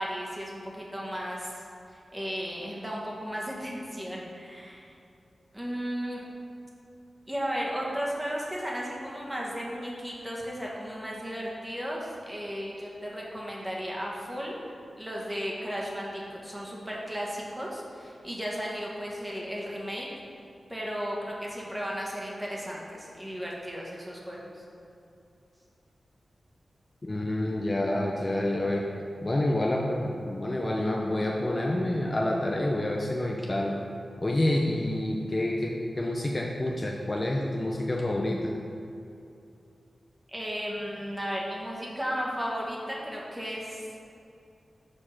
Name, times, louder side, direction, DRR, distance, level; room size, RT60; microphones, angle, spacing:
voice 1, 0.0-1.6 1.9-4.9 5.5-6.2 7.3-14.6 15.0-20.1 20.7-24.6 40.3-43.9, equal, 10° right, -4 dB, 1.5 m, -35 dB
voice 2, 27.0-28.9 29.2-33.7 34.2-38.5, left 1 dB, 30° left, -1 dB, 0.6 m, -28 dB
6.5 x 4.8 x 5.8 m, 2.6 s
wide cardioid pair, 90°, 0 cm